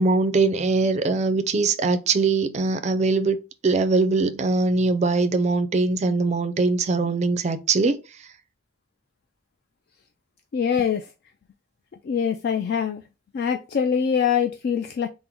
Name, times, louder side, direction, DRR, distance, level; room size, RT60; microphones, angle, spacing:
voice 1, 0.0-3.4 3.6-8.0, right 3 dB, 35° right, 0.4 m, -21 dB
voice 2, 10.5-11.1 12.0-13.0 13.3-15.1, left 7 dB, 50° left, 0.3 m, -23 dB
3.7 x 2.0 x 4.4 m
head